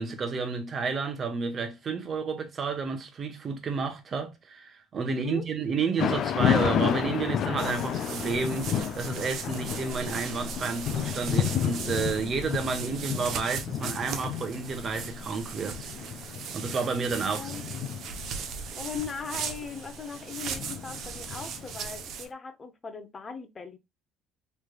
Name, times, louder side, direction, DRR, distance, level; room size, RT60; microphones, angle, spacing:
voice 1, 0.0-15.9 16.2-17.5, right 4 dB, 40° right, 1.0 m, -31 dB
voice 2, 5.1-5.5 17.4-17.6 18.8-23.8, left 6 dB, 30° left, 0.7 m, -39 dB
Thunder / Rain, 6.0-22.0, left 8 dB, 55° left, 0.4 m, -31 dB
sound 1, 7.6-22.3, right 6 dB, 60° right, 0.7 m, -38 dB
3.2 x 3.2 x 2.3 m
supercardioid pair, 90°, 0 cm